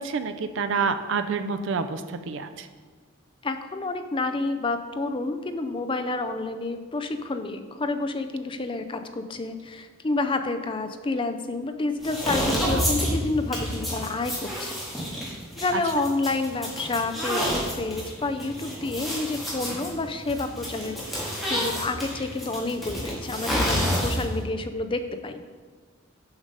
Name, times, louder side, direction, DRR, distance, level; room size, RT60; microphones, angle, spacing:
voice 1, 0.0-2.7 12.5-12.8 15.7-15.8, right 5 dB, 60° right, 9 dB, 0.4 m, -28 dB
voice 2, 3.4-14.7 15.6-25.4, left 3 dB, 25° left, 8 dB, 0.4 m, -29 dB
sound 1, 12.0-24.4, equal, ahead, 1.7 m, -29 dB
7.1 x 5.0 x 5.4 m, 1.5 s
head